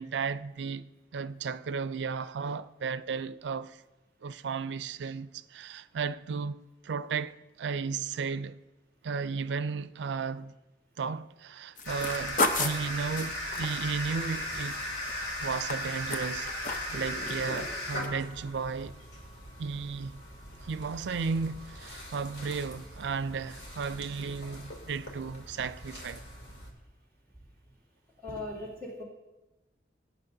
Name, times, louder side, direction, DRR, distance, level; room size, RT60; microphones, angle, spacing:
voice 1, 0.0-3.8 4.2-6.6 6.8-8.6 9.0-10.5 11.0-14.9 15.4-19.0 19.6-20.2 20.6-26.2, right 5 dB, 85° right, 0.4 m, -34 dB
sound 1, 11.8-26.7, left 1 dB, 80° left, 2.6 m, -38 dB
sound 2, 11.8-15.1 15.4-17.0 17.3-17.7 18.0-18.1, left 2 dB, 45° left, 0.7 m, -33 dB
voice 2, 28.2-29.0, left 2 dB, 15° left, 2.5 m, -38 dB
17.5 x 9.2 x 2.7 m
head